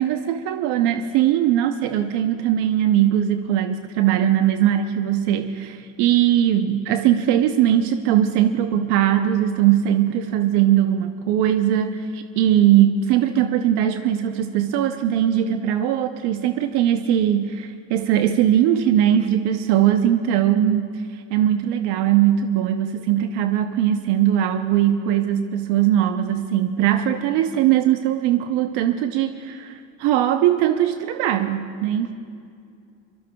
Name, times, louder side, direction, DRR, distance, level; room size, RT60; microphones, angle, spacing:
voice 1, 0.0-32.1, right 11 dB, 80° right, 7 dB, 0.8 m, -20 dB
25.0 x 19.0 x 2.3 m, 2.4 s
cardioid pair, 100°, 40 cm